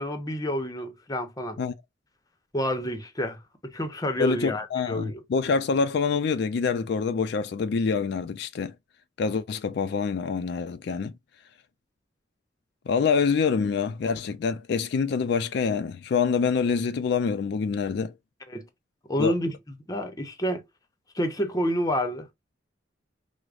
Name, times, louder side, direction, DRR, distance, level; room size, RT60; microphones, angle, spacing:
voice 1, 0.0-1.6 2.5-3.4 3.7-5.2 18.5-18.6 19.1-19.5 19.9-20.6 21.1-22.3, equal, 20° left, 0.7 m, -28 dB
voice 2, 4.2-8.7 9.2-11.1 12.9-18.1 19.2-19.3, left 5 dB, 60° left, 0.3 m, -26 dB
4.7 x 2.0 x 2.4 m
head